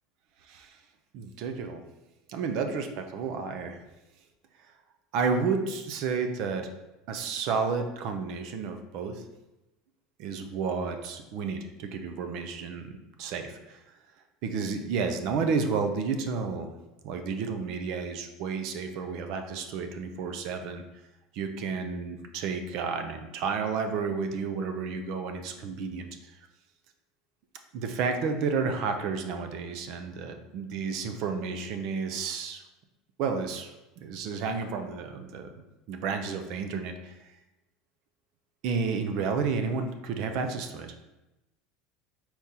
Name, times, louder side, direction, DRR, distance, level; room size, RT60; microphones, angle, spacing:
voice 1, 0.4-0.8 1.1-1.8 2.3-3.8 5.1-6.7 7.1-9.2 10.2-13.8 14.4-16.7 17.0-20.8 21.3-26.3 27.7-32.6 33.2-33.7 34.0-35.5 35.9-37.2 38.6-40.9, right 5 dB, 55° right, 6 dB, 0.5 m, -31 dB
4.4 x 3.7 x 2.8 m, 1.0 s
cardioid pair, 155°, 0 cm